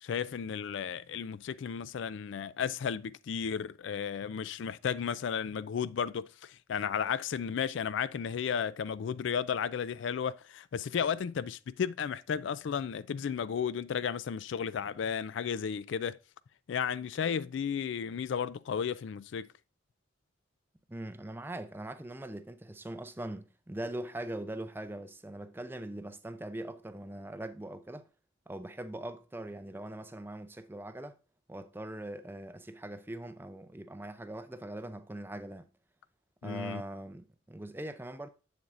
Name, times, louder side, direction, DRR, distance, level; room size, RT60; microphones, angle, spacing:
voice 1, 0.0-16.2 16.7-19.5 36.4-36.8, left 7 dB, 65° left, 0.3 m, -34 dB
voice 2, 20.9-28.1 28.5-31.2 31.5-35.7 36.4-38.3, right 1 dB, 10° right, 0.4 m, -41 dB
7.9 x 7.1 x 2.5 m
head